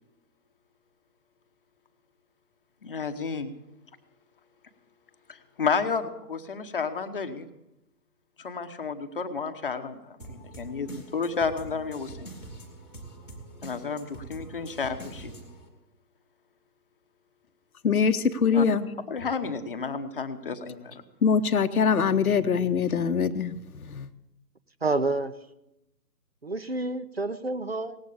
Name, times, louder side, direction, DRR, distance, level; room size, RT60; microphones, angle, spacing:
voice 1, 2.8-3.5 5.3-7.5 8.4-12.3 13.6-15.3 18.5-18.7 19.0-21.0, left 5 dB, 35° left, 8 dB, 1.0 m, -31 dB
sound 1, 10.2-15.7, right 2 dB, 5° left, 0.9 m, -44 dB
voice 2, 17.8-18.9 21.2-24.1, left 6 dB, 60° left, 8 dB, 0.9 m, -23 dB
voice 3, 24.8-25.4 26.4-28.0, right 3 dB, 40° right, 12 dB, 0.5 m, -28 dB
18.0 x 8.2 x 8.4 m, 0.90 s
figure-of-eight pair, 145°, 49 cm